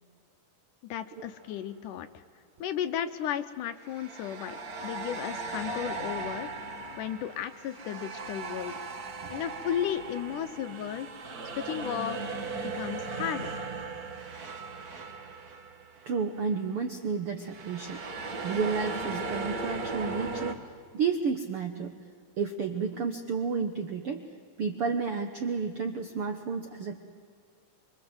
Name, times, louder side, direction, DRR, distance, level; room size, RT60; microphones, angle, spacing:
voice 1, 0.8-2.2 2.6-6.5 7.0-8.7 9.3-11.1 11.6-13.5, left 10 dB, 75° left, 10 dB, 2.1 m, -34 dB
sound 1, 1.2-1.4 3.8-16.2 16.5-16.7 17.4-20.5, right 3 dB, 60° right, 0.9 m, -37 dB
voice 2, 16.1-18.0 18.4-20.6 20.9-21.9 22.4-24.2 24.6-27.0, right 5 dB, 80° right, 6 dB, 1.2 m, -31 dB
25.5 x 24.0 x 7.8 m, 2.1 s
omnidirectional pair, 4.2 m